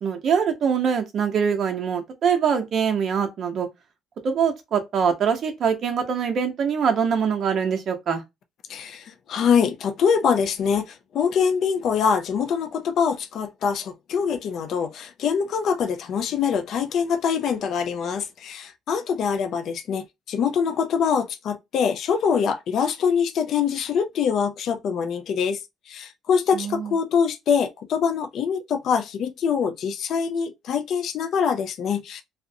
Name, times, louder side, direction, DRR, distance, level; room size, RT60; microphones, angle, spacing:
voice 1, 0.0-3.7 4.2-8.2 26.5-26.9, right 7 dB, 45° right, 0.7 m, -23 dB
voice 2, 8.7-25.6 25.9-32.2, left 6 dB, 55° left, 0.3 m, -24 dB
2.5 x 2.0 x 2.6 m
cardioid pair, 135°, 0 cm